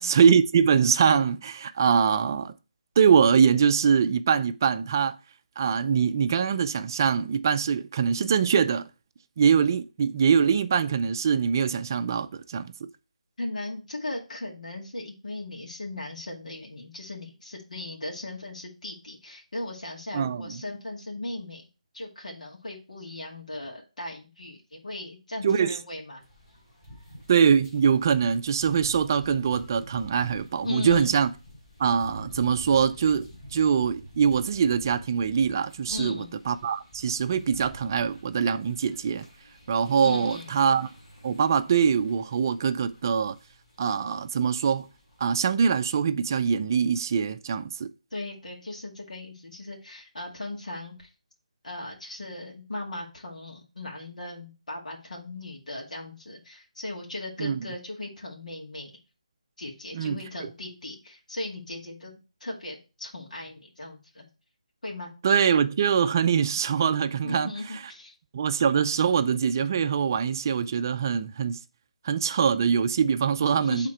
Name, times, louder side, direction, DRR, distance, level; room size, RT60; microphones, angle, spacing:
voice 1, 0.0-2.5 3.0-5.2 5.6-8.9 9.4-12.7 20.1-20.4 25.4-25.8 27.3-31.3 31.8-39.3 39.7-40.9 41.2-43.4 43.8-44.9 45.2-47.9 57.4-57.7 59.9-60.2 65.2-67.5 68.3-71.6 72.0-73.9, right 7 dB, 30° right, 0.4 m, -23 dB
voice 2, 13.4-21.7 21.9-26.2 30.6-31.1 35.9-36.3 40.0-40.5 48.1-51.1 51.6-58.9 59.6-64.3 64.8-65.1 67.2-68.1 73.1-73.2 73.6-73.9, left 2 dB, 85° left, 2.0 m, -37 dB
sound 1, 26.2-45.2, equal, 25° left, 3.8 m, -48 dB
8.7 x 3.7 x 4.4 m
figure-of-eight pair, 170°, 4 cm